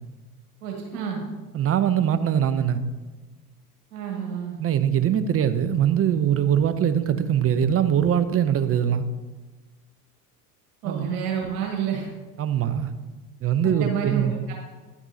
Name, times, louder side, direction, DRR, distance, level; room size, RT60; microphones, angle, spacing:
voice 1, 0.6-1.2 3.9-4.6 10.8-12.1 13.6-14.5, right 7 dB, 70° right, 0 dB, 2.0 m, -29 dB
voice 2, 1.5-2.8 4.6-9.0 10.8-11.1 12.4-12.9 13.4-14.3, right 9 dB, 30° right, 11 dB, 0.7 m, -22 dB
10.5 x 9.6 x 2.8 m, 1.2 s
hypercardioid pair, 70°, 45 cm